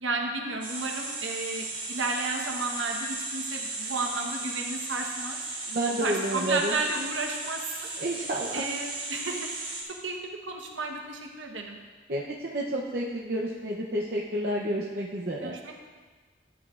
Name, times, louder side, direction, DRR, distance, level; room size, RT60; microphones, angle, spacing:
voice 1, 0.0-5.4 6.0-7.9 8.5-9.4 9.9-11.8 15.4-15.7, right 3 dB, 90° right, 2 dB, 1.2 m, -32 dB
sound 1, 0.6-9.8, right 3 dB, 25° right, 1.4 m, -36 dB
voice 2, 5.7-6.8 7.9-8.6 12.1-15.5, right 1 dB, 50° right, -4 dB, 0.7 m, -30 dB
12.0 x 8.3 x 2.5 m, 1.4 s
head